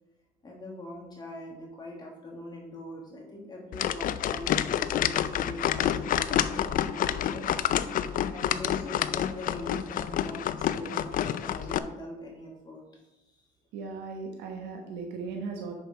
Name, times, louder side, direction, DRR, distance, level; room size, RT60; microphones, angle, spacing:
voice 1, 0.4-7.4 8.3-13.4, left 1 dB, 25° left, -1 dB, 1.6 m, -42 dB
sound 1, 3.7-11.8, left 10 dB, 55° left, 0.5 m, -28 dB
voice 2, 13.7-15.7, right 4 dB, 90° right, 2 dB, 1.2 m, -37 dB
7.0 x 6.0 x 4.8 m, 0.96 s
cardioid pair, 110°, 17 cm